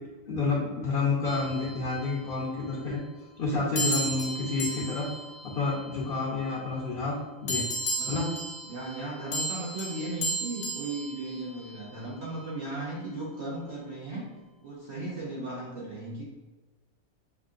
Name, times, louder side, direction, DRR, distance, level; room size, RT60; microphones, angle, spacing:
voice 1, 0.3-3.0 3.4-5.1 5.5-7.2 7.4-7.7 8.1-8.2, left 3 dB, 50° left, -5 dB, 1.0 m, -29 dB
sound 1, 1.3-2.5 3.8-6.5 7.5-12.0, equal, 90° left, 1.3 m, -35 dB
voice 2, 8.0-8.3 8.6-14.3 14.6-16.2, right 2 dB, 60° right, -6 dB, 1.2 m, -36 dB
6.2 x 2.7 x 2.4 m, 1.2 s
omnidirectional pair, 1.3 m